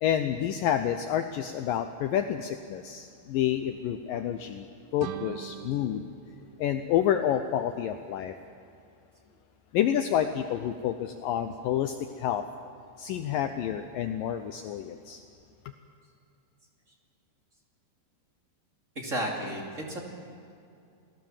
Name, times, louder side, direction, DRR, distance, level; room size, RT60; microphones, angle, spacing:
voice 1, 0.0-6.0 6.6-8.4 9.7-12.4 13.0-15.2, left 10 dB, 90° left, 8 dB, 1.9 m, -29 dB
sound 1, 5.0-7.7, right 12 dB, 85° right, 2.0 m, -44 dB
voice 2, 18.9-20.0, right 1 dB, 25° right, 0 dB, 2.2 m, -32 dB
29.0 x 19.0 x 7.4 m, 2.5 s
omnidirectional pair, 5.0 m